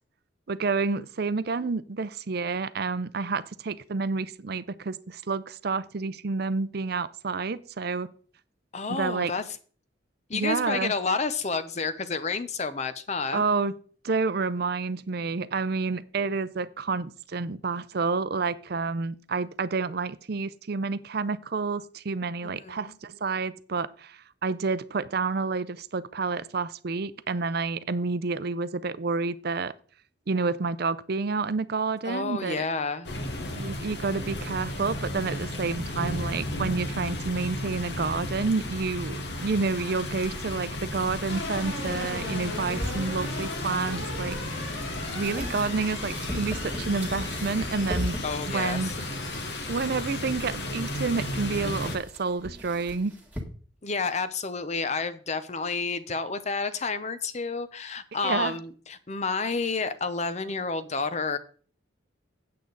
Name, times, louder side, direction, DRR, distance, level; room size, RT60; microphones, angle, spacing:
voice 1, 0.5-8.1 8.9-9.3 10.3-10.9 13.3-13.7 14.0-29.7 30.3-32.6 33.6-44.6 45.1-48.2 48.5-48.9 49.7-53.2 58.2-58.6, right 4 dB, 50° right, 0.5 m, -29 dB
voice 2, 8.7-9.4 10.3-13.4 22.4-22.9 32.0-33.1 48.2-48.9 53.8-61.4, left 4 dB, 35° left, 0.7 m, -30 dB
sound 1, 33.0-52.0, left 1 dB, 55° left, 1.3 m, -34 dB
sound 2, 41.3-50.2, left 2 dB, 85° left, 2.8 m, -40 dB
sound 3, 42.7-53.4, equal, 5° right, 1.7 m, -39 dB
8.5 x 8.5 x 3.9 m
head